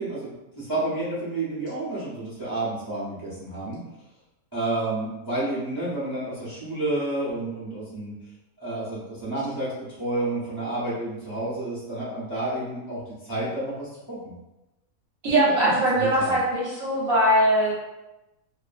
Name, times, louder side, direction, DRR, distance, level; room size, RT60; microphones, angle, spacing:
voice 1, 0.0-3.8 4.5-8.1 8.6-14.3 15.5-16.3, right 2 dB, 30° right, -9 dB, 0.4 m, -30 dB
voice 2, 15.2-17.7, right 1 dB, 70° right, -6 dB, 1.1 m, -21 dB
2.5 x 2.5 x 2.4 m, 0.98 s
omnidirectional pair, 1.5 m